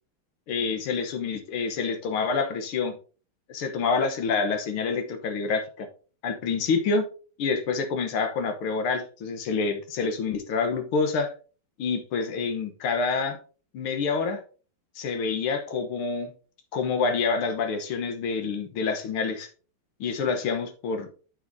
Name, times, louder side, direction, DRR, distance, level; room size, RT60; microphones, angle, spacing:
voice 1, 0.5-3.0 3.5-5.9 6.2-7.1 7.4-11.3 11.8-13.4 13.7-14.4 15.0-16.3 16.7-19.5 20.0-21.1, left 4 dB, 90° left, 2.0 m, -27 dB
8.5 x 7.4 x 2.7 m
omnidirectional pair, 2.3 m